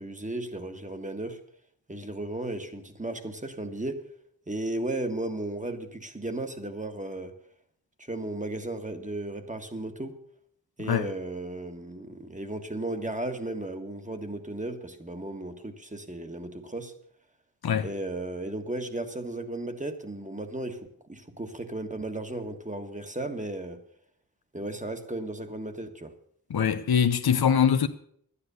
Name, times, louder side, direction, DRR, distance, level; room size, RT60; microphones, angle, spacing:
voice 1, 0.0-1.4 1.9-4.1 4.5-7.3 8.0-10.2 10.8-16.9 17.8-23.8 24.5-26.1, right 2 dB, 20° right, 1.6 m, -35 dB
voice 2, 26.5-27.9, left 7 dB, 90° left, 0.8 m, -23 dB
11.5 x 9.9 x 6.8 m
wide cardioid pair, 55°, 36 cm